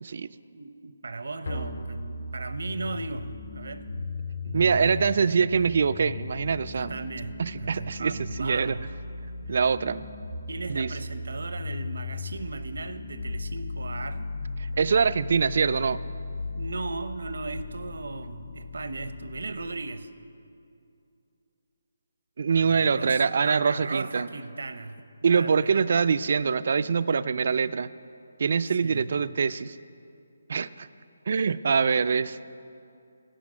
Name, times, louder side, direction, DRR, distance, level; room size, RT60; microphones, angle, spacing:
voice 1, 0.5-3.9 4.4-4.9 6.7-8.8 9.5-9.6 10.5-14.3 16.5-20.1 22.5-26.0 28.7-29.1, right 3 dB, 75° right, 12 dB, 0.7 m, -37 dB
sound 1, 1.4-19.4, left 3 dB, 70° left, 2.4 m, -37 dB
voice 2, 4.5-7.0 7.4-8.8 9.5-10.0 10.7-10.9 14.6-16.0 22.4-24.3 25.2-27.9 28.4-29.8 30.5-30.9 31.3-32.4, right 5 dB, 50° right, 15 dB, 0.3 m, -24 dB
11.5 x 8.3 x 7.4 m, 2.6 s
hypercardioid pair, 170°, 0 cm